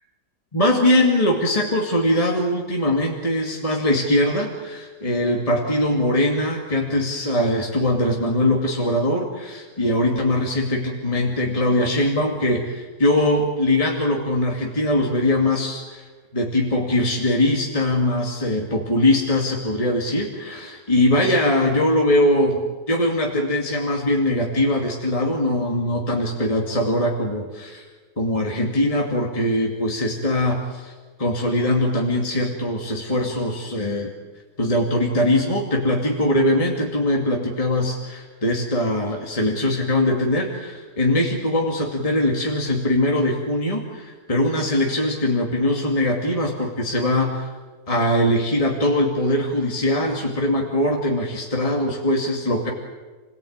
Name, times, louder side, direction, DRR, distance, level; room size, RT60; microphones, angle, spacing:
voice 1, 0.5-27.8 28.2-30.9 31.2-34.1 34.6-47.5 47.9-52.7, left 1 dB, 20° left, 0 dB, 2.5 m, -21 dB
29.5 x 18.0 x 8.9 m, 1.3 s
omnidirectional pair, 1.8 m